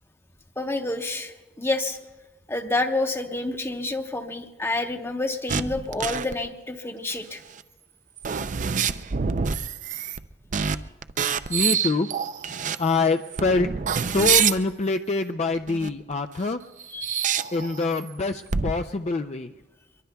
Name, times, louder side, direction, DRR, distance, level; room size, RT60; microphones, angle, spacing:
voice 1, 0.6-2.0 2.5-7.4 8.3-8.4 16.9-17.2, left 2 dB, 15° left, 5 dB, 1.0 m, -28 dB
sound 1, 5.5-6.3 7.6-7.7 8.2-10.3 10.5-10.8 11.0-12.8 13.2-14.6 15.7-16.1 16.8-18.1 18.5-18.7, right 7 dB, 45° right, 0.5 m, -26 dB
voice 2, 11.5-12.1 12.8-16.6 17.5-19.5, left 3 dB, 40° left, 7 dB, 0.4 m, -25 dB
24.0 x 23.0 x 2.3 m, 1.1 s
head